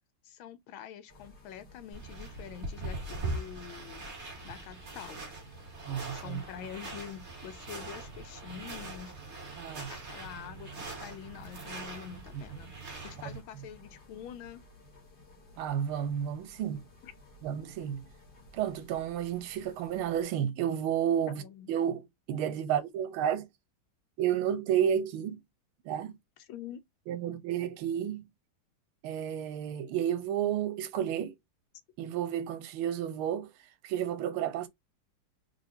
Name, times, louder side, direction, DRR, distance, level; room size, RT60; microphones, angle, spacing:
voice 1, 0.2-4.1 4.4-5.2 6.1-9.1 9.9-12.7 13.0-14.6 17.0-17.1 21.3-21.7 26.5-26.8, left 9 dB, 80° left, 1.4 m, -45 dB
sound 1, 1.1-20.2, left 1 dB, 30° left, 1.4 m, -56 dB
sound 2, 1.9-13.4, right 2 dB, 35° right, 1.5 m, -42 dB
voice 2, 5.9-6.4 9.6-9.9 12.3-12.4 15.6-16.8 17.4-18.0 18.5-21.4 21.7-23.5 24.2-25.4 25.8-26.2 27.1-28.2 29.0-31.3 32.0-33.5 33.8-34.7, right 9 dB, 80° right, 1.5 m, -31 dB
3.7 x 3.4 x 2.6 m
omnidirectional pair, 2.3 m